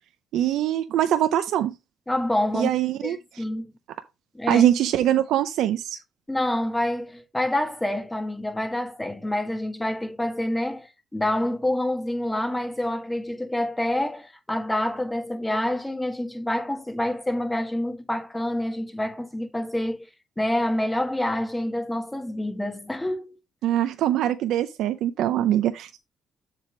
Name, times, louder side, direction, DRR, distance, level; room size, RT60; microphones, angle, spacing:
voice 1, 0.3-1.7 2.5-3.4 4.5-6.0 23.6-25.9, right 11 dB, 85° right, 0.5 m, -23 dB
voice 2, 2.1-2.7 3.0-3.7 4.3-4.6 6.3-20.1 20.4-23.3, left 1 dB, 10° left, 1.6 m, -27 dB
7.4 x 3.4 x 5.8 m
cardioid pair, 90°, 0 cm